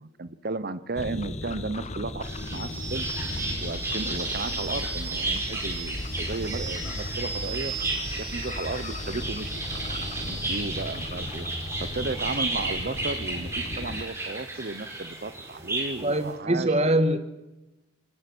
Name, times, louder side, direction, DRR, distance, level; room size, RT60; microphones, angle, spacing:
voice 1, 0.0-2.2 2.5-3.1 3.6-7.7 8.2-9.5 10.3-11.5 11.8-17.0, right 3 dB, 50° right, 13 dB, 0.9 m, -34 dB
sound 1, 0.9-14.0, left 2 dB, 35° left, 1.1 m, -36 dB
sound 2, 2.2-16.3, right 2 dB, 15° right, 5.6 m, -33 dB
voice 2, 16.0-17.2, right 1 dB, 30° right, 9 dB, 1.6 m, -23 dB
26.5 x 20.0 x 6.2 m, 1.0 s
head